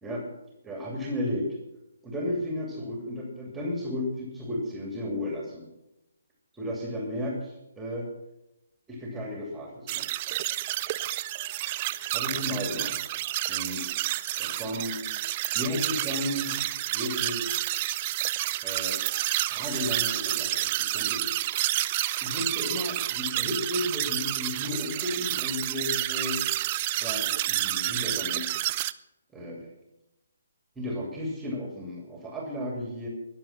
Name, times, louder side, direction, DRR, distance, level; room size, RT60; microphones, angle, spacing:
voice 1, 0.6-1.5 2.0-5.7 6.5-8.1 8.9-10.0 12.1-13.0 13.5-13.8 14.4-15.0 15.5-16.5 16.9-17.5 18.6-19.0 19.5-21.5 22.2-26.4 27.0-28.4 29.3-29.7 30.8-33.1, left 1 dB, 10° right, -1 dB, 2.7 m, -33 dB
sound 1, 9.9-28.9, right 16 dB, 30° right, 0.4 m, -29 dB
21.5 x 7.3 x 5.9 m, 0.93 s
figure-of-eight pair, 135°, 0 cm